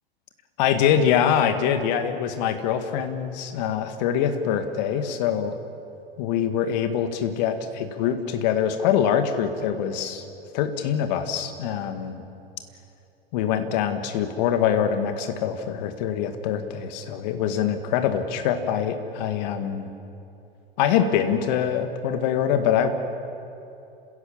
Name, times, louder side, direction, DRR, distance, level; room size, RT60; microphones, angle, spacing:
voice 1, 0.6-5.5 6.2-10.2 10.5-12.2 13.3-19.9 20.8-22.9, left 8 dB, 45° left, 8 dB, 2.0 m, -24 dB
30.0 x 16.5 x 7.4 m, 2.8 s
figure-of-eight pair, 95°, 30 cm